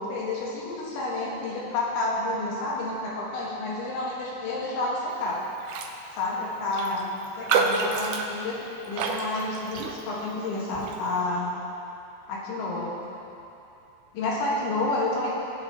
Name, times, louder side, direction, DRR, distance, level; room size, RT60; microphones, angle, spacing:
voice 1, 0.0-5.4 6.1-7.1 7.4-8.6 8.9-11.5 12.3-12.9 14.1-15.3, left 2 dB, 75° left, -5 dB, 4.0 m, -29 dB
Raindrop, 5.6-6.0 6.3-6.4 6.7-10.3 10.7-11.0, right 5 dB, 85° right, 2.3 m, -29 dB
22.0 x 8.3 x 3.1 m, 2.9 s
omnidirectional pair, 5.6 m